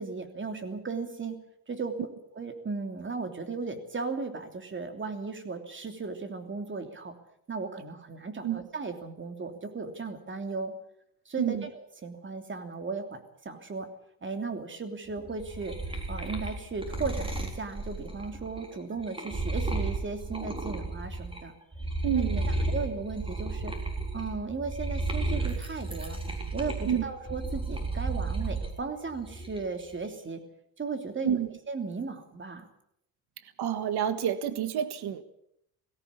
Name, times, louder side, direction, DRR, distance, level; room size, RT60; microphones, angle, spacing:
voice 1, 0.0-1.4 1.7-2.0 2.3-7.2 7.5-10.7 11.2-13.9 14.2-15.8 16.1-21.5 22.1-23.7 24.1-26.2 26.5-30.4 30.8-31.4 31.7-32.7, right 4 dB, 30° right, 6 dB, 3.0 m, -36 dB
sound 1, 15.2-21.4 21.7-28.7 29.1-29.8, right 2 dB, 15° right, 3.8 m, -33 dB
voice 2, 22.0-22.5 26.9-27.0 31.2-31.5 33.6-35.2, right 9 dB, 75° right, 12 dB, 1.6 m, -28 dB
19.0 x 16.5 x 8.4 m, 0.75 s
cardioid pair, 125°, 39 cm